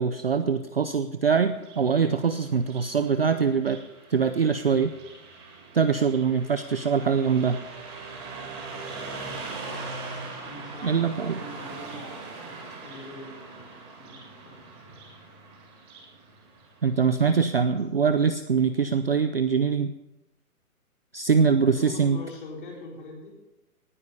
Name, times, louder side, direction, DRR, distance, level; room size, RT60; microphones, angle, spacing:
voice 1, 0.0-3.8 4.1-4.9 5.7-7.6 10.8-11.4 16.8-19.9 21.1-22.2, right 6 dB, 40° right, 10 dB, 0.5 m, -23 dB
Car passing by, 1.5-17.5, right 3 dB, 15° right, 2.4 m, -41 dB
voice 2, 10.4-15.0 21.6-23.3, left 2 dB, 35° left, -1 dB, 4.4 m, -43 dB
18.5 x 9.8 x 5.5 m, 0.97 s
hypercardioid pair, 170°, 45 cm